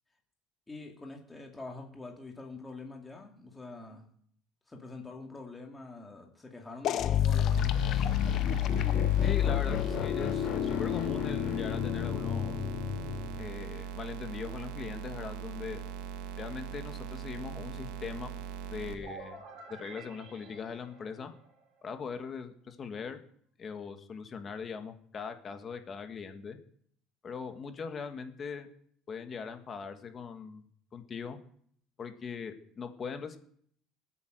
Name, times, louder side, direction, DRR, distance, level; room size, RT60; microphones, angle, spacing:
voice 1, 0.7-4.1 4.7-7.8, left 3 dB, 10° left, 1 dB, 2.6 m, -45 dB
sound 1, 6.8-13.5, left 11 dB, 45° left, 0.7 m, -29 dB
sound 2, 7.5-18.9, right 8 dB, 80° right, 1.7 m, -41 dB
voice 2, 9.2-12.5 13.4-15.8 16.4-18.3 18.7-19.4 19.8-21.3 21.8-23.2 23.6-26.6 27.2-28.7 29.1-30.7 30.9-31.4 32.0-33.4, left 6 dB, 30° left, 7 dB, 1.6 m, -40 dB
sound 3, 19.0-21.8, right 4 dB, 55° right, 4.2 m, -49 dB
19.0 x 8.7 x 7.7 m, 0.63 s
cardioid pair, 150°, 0 cm